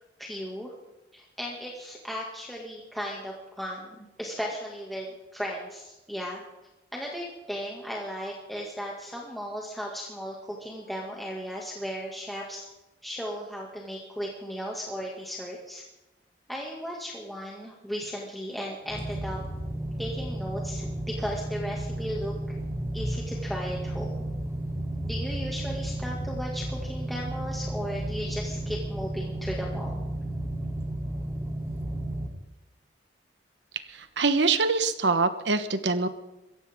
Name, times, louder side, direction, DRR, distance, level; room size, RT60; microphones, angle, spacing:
voice 1, 0.2-0.7 1.1-5.1 5.3-6.4 6.9-12.7 13.0-15.8 16.5-19.4 20.0-22.6 22.9-24.3 25.0-30.0, equal, ahead, -3 dB, 2.3 m, -36 dB
sound 1, 18.9-32.3, right 1 dB, 15° right, 2.4 m, -33 dB
voice 2, 33.9-36.1, right 4 dB, 85° right, 10 dB, 1.3 m, -24 dB
22.5 x 16.5 x 3.8 m, 1.0 s
head